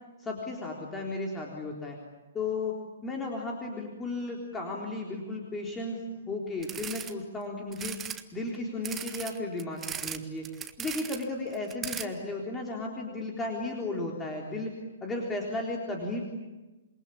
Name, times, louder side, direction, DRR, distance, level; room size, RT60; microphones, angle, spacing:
voice 1, 0.2-2.0 2.3-2.8 3.0-6.0 6.3-8.0 8.3-10.5 10.8-14.7 15.0-16.2, left 2 dB, 15° left, -1 dB, 3.8 m, -34 dB
sound 1, 6.6-7.1 7.7-8.2 8.8-10.2 10.4-11.2 11.5-12.0, right 8 dB, 15° right, 1.4 m, -37 dB
28.0 x 23.0 x 8.7 m, 1.1 s
figure-of-eight pair, 120°, 0 cm